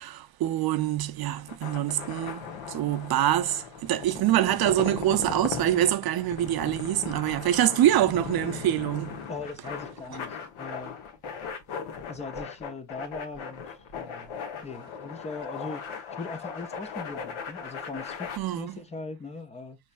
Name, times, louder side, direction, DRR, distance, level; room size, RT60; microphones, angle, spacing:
voice 1, 0.0-9.2 18.4-18.8, right 12 dB, 50° right, 0.5 m, -25 dB
sound 1, 1.4-18.4, left 6 dB, 80° left, 1.2 m, -38 dB
voice 2, 9.3-11.0 12.1-15.9 16.2-19.8, left 3 dB, 15° left, 0.4 m, -40 dB
5.5 x 3.2 x 2.4 m
cardioid pair, 170°, 49 cm